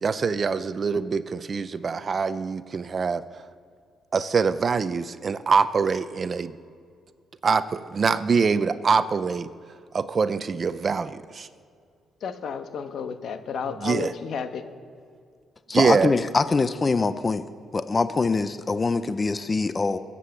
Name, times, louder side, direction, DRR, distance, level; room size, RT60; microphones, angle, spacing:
voice 1, 0.0-3.2 4.1-6.6 7.4-9.5 9.9-11.5 13.6-14.1 15.7-16.1, right 5 dB, 40° right, 14 dB, 0.6 m, -24 dB
voice 2, 12.2-14.6, left 6 dB, 65° left, 8 dB, 1.2 m, -32 dB
voice 3, 15.7-17.4 17.7-20.0, left 3 dB, 30° left, 12 dB, 0.6 m, -24 dB
21.5 x 8.5 x 7.2 m, 2.2 s
cardioid pair, 90°, 0 cm